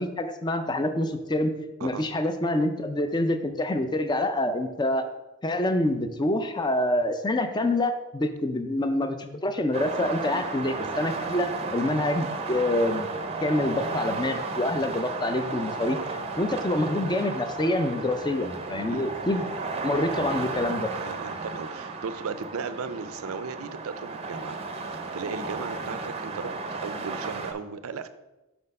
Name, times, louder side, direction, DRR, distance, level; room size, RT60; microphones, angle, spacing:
voice 1, 0.0-1.5 1.8-5.0 5.4-13.1 13.4-16.0 16.4-19.5 19.8-20.9, left 1 dB, 20° left, 8 dB, 0.4 m, -26 dB
sound 1, 9.7-27.5, right 3 dB, 30° right, 0.6 m, -34 dB
voice 2, 15.8-16.3 18.7-19.0 19.3-19.4 20.9-24.6 24.9-28.1, right 5 dB, 75° right, 11 dB, 0.5 m, -36 dB
5.7 x 4.3 x 5.3 m, 1.0 s
head